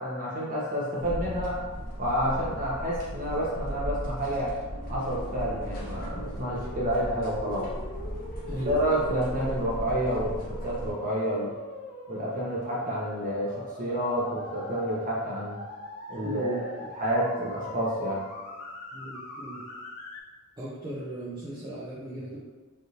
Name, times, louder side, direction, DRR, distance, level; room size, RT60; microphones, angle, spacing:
voice 1, 0.0-1.6 2.0-4.5 4.8-7.7 8.5-11.5 12.1-15.6 16.1-16.6 17.0-18.2, equal, 40° right, -6 dB, 0.9 m, -29 dB
sound 1, 1.0-10.9, equal, 40° left, 0.9 m, -37 dB
sound 2, 4.7-20.2, left 2 dB, 85° left, 0.6 m, -42 dB
voice 2, 8.5-8.8 16.2-16.6 18.9-19.6 20.6-22.4, right 2 dB, 20° right, -9 dB, 0.6 m, -37 dB
3.3 x 2.6 x 2.8 m, 1.3 s
head